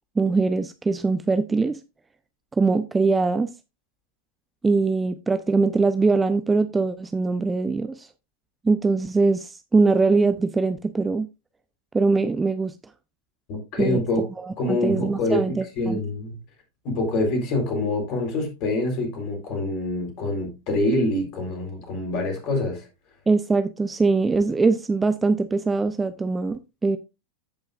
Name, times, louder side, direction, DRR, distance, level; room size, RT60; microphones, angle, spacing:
voice 1, 0.2-1.8 2.5-3.5 4.6-8.1 8.6-11.3 11.9-12.7 13.8-14.0 14.4-16.0 23.3-27.0, right 3 dB, 10° right, 0.5 m, -22 dB
voice 2, 13.5-14.3 14.6-16.4 16.8-22.9, left 2 dB, 40° left, 3.9 m, -26 dB
15.0 x 5.5 x 2.5 m
figure-of-eight pair, 90°, 0 cm